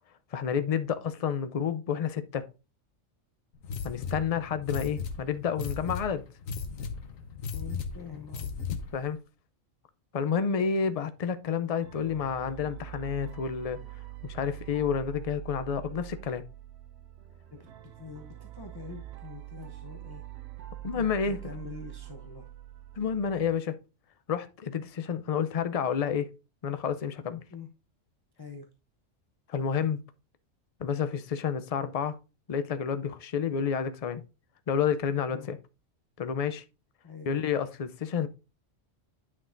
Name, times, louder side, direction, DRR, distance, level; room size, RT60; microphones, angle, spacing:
voice 1, 0.3-2.4 3.8-6.2 8.9-9.2 10.1-13.8 14.2-16.5 20.8-21.5 23.0-23.8 24.3-26.3 26.6-27.4 29.5-30.0 30.8-32.2 32.5-34.2 34.7-35.6 36.2-36.6 37.3-38.3, left 7 dB, 60° left, 0.3 m, -30 dB
sound 1, 3.6-9.1, left 5 dB, 90° left, 1.3 m, -36 dB
voice 2, 7.5-8.5 17.5-20.2 20.9-22.5 27.5-27.7 28.4-28.7 35.3-35.5 37.0-37.4, left 5 dB, 25° left, 0.6 m, -45 dB
sound 2, 11.8-23.5, right 14 dB, 65° right, 0.8 m, -44 dB
9.6 x 6.0 x 2.5 m
omnidirectional pair, 1.3 m